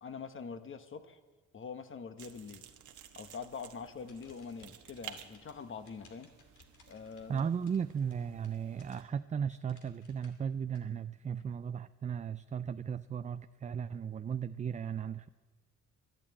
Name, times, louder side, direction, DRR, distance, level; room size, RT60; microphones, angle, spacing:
voice 1, 0.0-1.2 1.5-2.6 3.1-6.3 6.9-7.5, left 5 dB, 40° left, 10 dB, 1.2 m, -44 dB
sound 1, 2.2-9.0, right 9 dB, 75° right, 1.3 m, -54 dB
sound 2, 4.0-9.3 9.7-10.8, left 5 dB, 80° left, 2.6 m, -64 dB
voice 2, 7.3-15.3, right 7 dB, 25° right, 12 dB, 0.4 m, -36 dB
12.0 x 12.0 x 8.7 m, 1.4 s
cardioid pair, 90°, 30 cm